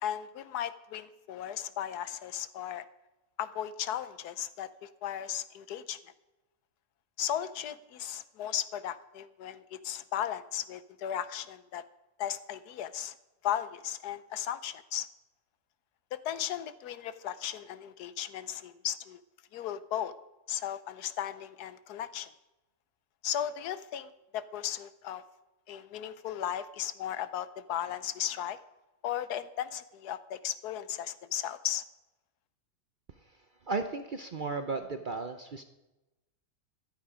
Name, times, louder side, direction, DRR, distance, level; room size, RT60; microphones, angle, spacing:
voice 1, 0.0-2.8 3.4-6.0 7.2-11.8 12.2-13.1 13.4-15.1 16.1-19.2 19.5-20.1 20.5-22.3 23.2-25.2 25.7-28.6 29.0-31.8, left 10 dB, 90° left, 14 dB, 1.3 m, -36 dB
voice 2, 33.7-35.6, right 3 dB, 50° right, 7 dB, 0.6 m, -34 dB
14.0 x 11.5 x 4.9 m, 1.0 s
omnidirectional pair, 1.6 m